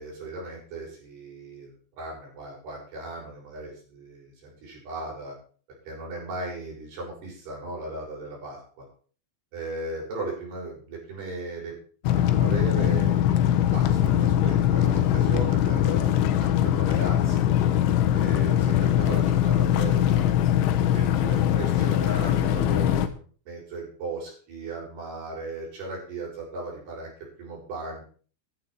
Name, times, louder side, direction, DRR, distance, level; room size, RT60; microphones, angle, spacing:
voice 1, 0.0-5.4 5.9-8.6 9.5-11.8 12.3-17.5 18.1-20.3 20.9-23.2 23.5-27.1 27.4-28.0, right 2 dB, 60° right, -2 dB, 7.5 m, -37 dB
sound 1, 12.0-23.1, left 11 dB, 90° left, 3.5 m, -22 dB
14.0 x 11.5 x 4.5 m, 0.43 s
omnidirectional pair, 5.3 m